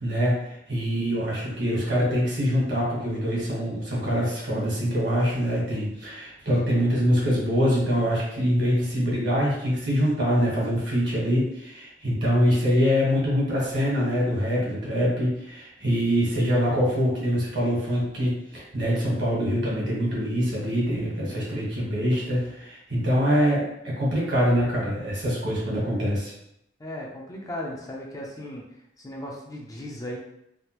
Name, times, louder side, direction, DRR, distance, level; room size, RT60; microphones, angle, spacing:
voice 1, 0.0-26.3, equal, 65° right, -5 dB, 1.5 m, -24 dB
voice 2, 26.8-28.6 29.0-30.2, left 1 dB, 20° left, -2 dB, 0.4 m, -36 dB
3.3 x 2.4 x 2.9 m, 0.80 s
head